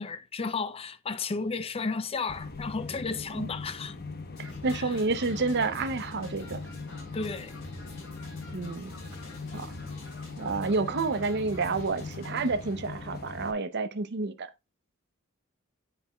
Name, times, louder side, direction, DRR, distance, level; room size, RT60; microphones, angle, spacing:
voice 1, 0.0-4.0 4.7-4.9 7.1-7.6, left 4 dB, 30° left, 0.4 m, -33 dB
sound 1, 2.3-13.5, left 3 dB, 50° left, 0.8 m, -40 dB
sound 2, 4.3-12.7, left 2 dB, 65° left, 3.6 m, -48 dB
voice 2, 4.4-6.6 8.5-8.9 9.5-9.7 10.4-14.5, right 3 dB, 55° right, 0.7 m, -29 dB
9.8 x 4.6 x 2.3 m
head